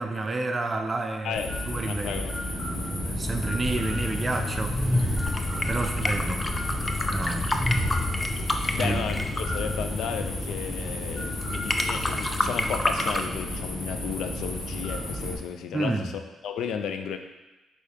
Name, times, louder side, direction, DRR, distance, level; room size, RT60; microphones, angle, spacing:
voice 1, 0.0-1.4 1.7-2.2 2.5-6.5 7.1-7.5 8.8-9.0 15.7-16.1, right 3 dB, 30° right, 6 dB, 0.6 m, -30 dB
voice 2, 1.2-1.6 1.9-2.3 8.7-17.2, left 7 dB, 75° left, 7 dB, 0.5 m, -33 dB
sound 1, 1.3-15.4, left 1 dB, 45° left, 1.7 m, -33 dB
Train, 2.5-10.3, left 1 dB, 5° left, 1.7 m, -31 dB
sound 2, 3.6-13.3, left 1 dB, 20° left, 0.5 m, -31 dB
6.6 x 4.8 x 3.5 m, 1.1 s
cardioid pair, 90°, 0 cm